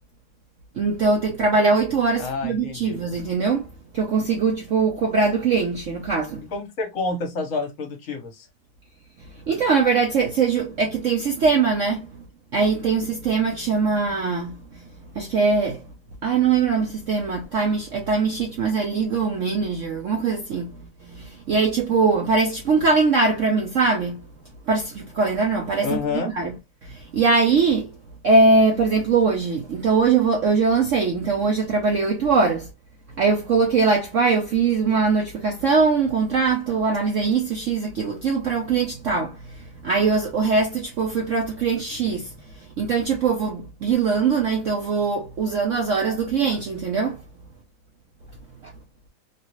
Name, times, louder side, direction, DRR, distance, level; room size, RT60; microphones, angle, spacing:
voice 1, 0.8-3.7 3.9-6.4 9.5-12.1 12.5-14.5 15.1-15.8 16.2-20.7 21.0-24.2 24.7-26.5 26.8-27.9 28.2-32.7 33.2-47.2 48.6-48.7, right 4 dB, 70° right, 0.7 m, -21 dB
voice 2, 2.2-3.0 6.5-8.5 25.8-26.3, left 4 dB, 50° left, 1.2 m, -28 dB
3.2 x 2.5 x 3.0 m
omnidirectional pair, 2.1 m